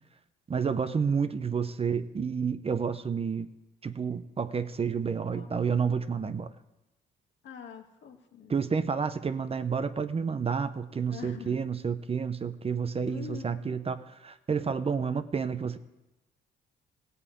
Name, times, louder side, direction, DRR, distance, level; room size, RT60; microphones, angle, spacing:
voice 1, 0.5-3.5 3.8-6.5 8.5-15.8, right 6 dB, 30° right, 12 dB, 0.7 m, -30 dB
voice 2, 7.4-8.5 11.1-11.6 13.0-13.8, left 7 dB, 70° left, 4 dB, 1.7 m, -44 dB
16.5 x 5.5 x 8.4 m, 1.0 s
cardioid pair, 90°, 20 cm